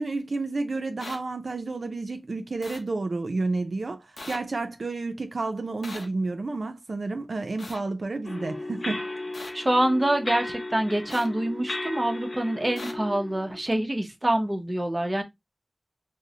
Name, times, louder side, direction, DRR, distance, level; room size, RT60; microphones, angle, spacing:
voice 1, 0.0-9.1, right 3 dB, 75° right, 0.4 m, -30 dB
sound 1, 1.0-1.2 2.6-2.8 4.2-4.4 5.8-6.0 7.6-7.8 9.3-9.5 11.1-11.3 12.8-12.9, left 2 dB, 85° left, 0.7 m, -39 dB
sound 2, 8.2-13.6, left 2 dB, 45° left, 0.5 m, -35 dB
voice 2, 9.5-15.2, right 1 dB, 25° right, 0.6 m, -26 dB
3.9 x 2.0 x 2.7 m
wide cardioid pair, 70°, 0 cm